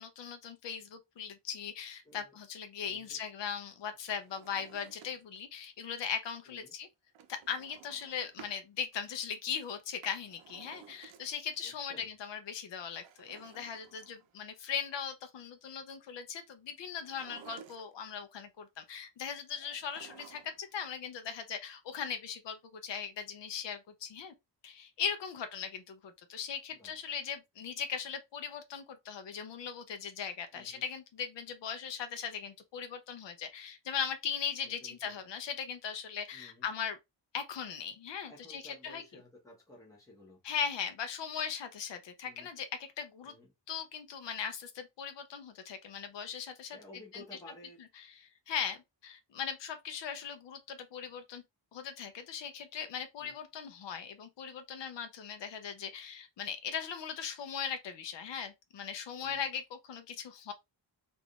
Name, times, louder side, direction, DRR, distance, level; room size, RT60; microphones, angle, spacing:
voice 1, 0.0-6.9 7.3-24.3 24.6-37.0 37.3-39.0 40.4-42.7 43.0-43.3 43.7-46.8 48.5-51.4 51.7-60.5, left 7 dB, 70° left, 0.7 m, -39 dB
voice 2, 2.0-2.4 2.8-3.2 6.4-6.7 11.6-12.1 26.7-26.9 30.5-30.8 34.6-35.2 36.3-36.7 38.3-40.4 42.2-42.5 43.2-43.5 46.7-47.8 53.2-53.3 59.2-59.5, left 1 dB, 10° left, 0.9 m, -54 dB
Drawer open or close, 3.9-5.5 7.1-8.6 9.8-11.6 12.8-14.5 16.9-18.2 19.6-20.7 21.0-21.1, right 8 dB, 80° right, 0.6 m, -55 dB
3.4 x 2.6 x 2.3 m
wide cardioid pair, 145°, 44 cm